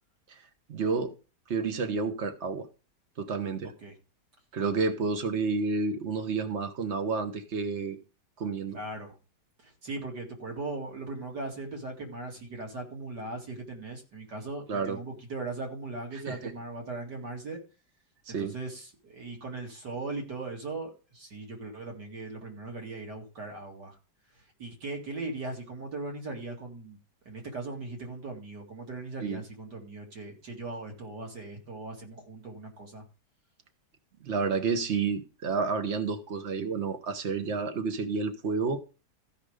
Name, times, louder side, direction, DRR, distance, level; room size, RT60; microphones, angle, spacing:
voice 1, 0.7-1.1 1.5-2.7 3.2-3.7 4.5-8.0 8.4-8.8 14.7-15.0 16.3-16.5 18.3-18.5 29.2-29.4 34.2-38.8, right 4 dB, 45° right, 1.3 m, -30 dB
voice 2, 8.7-9.2 9.6-17.6 18.3-24.0 24.6-27.0 27.2-33.0, right 3 dB, 75° right, 3.0 m, -39 dB
14.5 x 5.1 x 5.0 m
omnidirectional pair, 1.8 m